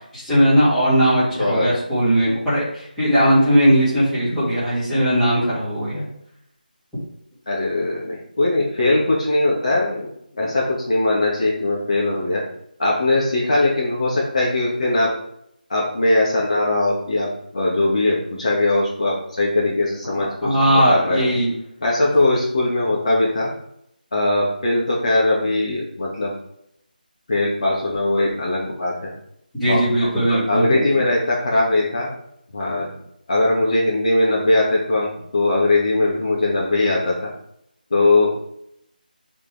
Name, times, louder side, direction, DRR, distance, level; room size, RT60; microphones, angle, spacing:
voice 1, 0.1-6.1 20.4-21.5 29.6-30.9, equal, ahead, -17 dB, 2.7 m, -18 dB
voice 2, 1.4-1.7 7.5-10.1 10.3-12.4 12.8-15.1 15.7-21.3 21.8-23.5 24.1-26.3 27.3-29.1 29.7-29.8 30.3-32.1 32.5-32.9 33.3-37.3 37.9-38.3, left 2 dB, 45° left, -4 dB, 2.1 m, -20 dB
6.7 x 4.5 x 3.6 m, 0.74 s
figure-of-eight pair, 175°, 5 cm